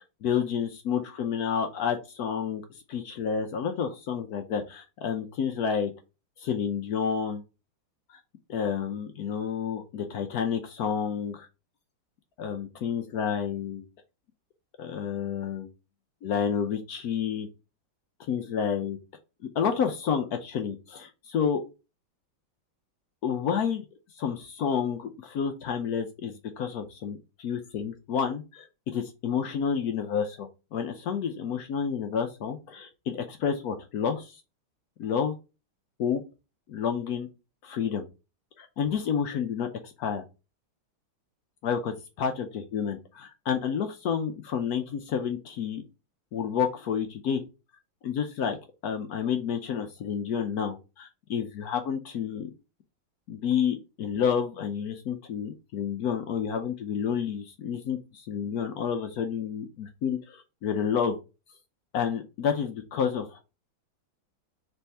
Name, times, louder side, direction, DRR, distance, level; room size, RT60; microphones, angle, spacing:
voice 1, 0.0-2.6 2.9-5.9 6.5-7.4 8.5-11.5 12.4-13.8 14.8-15.7 16.2-17.5 18.2-19.0 19.5-21.6 23.2-23.8 24.1-34.4 35.0-35.3 36.0-36.2 36.7-37.3 37.6-38.1 38.6-40.2 41.6-45.8 46.3-47.4 48.0-48.6 48.8-52.5 53.3-61.2 61.9-63.6, left 7 dB, 70° left, 6 dB, 0.9 m, -30 dB
3.4 x 3.4 x 4.1 m, 0.28 s
omnidirectional pair, 2.2 m